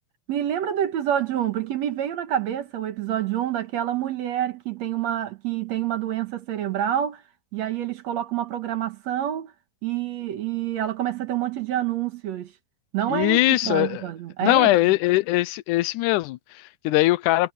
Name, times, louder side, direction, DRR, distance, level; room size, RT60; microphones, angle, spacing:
voice 1, 0.3-7.2 7.5-9.5 9.8-12.5 12.9-14.7, right 11 dB, 65° right, 2.2 m, -27 dB
voice 2, 13.1-14.0 14.4-17.5, left 17 dB, 85° left, 2.0 m, -21 dB
omnidirectional pair, 3.7 m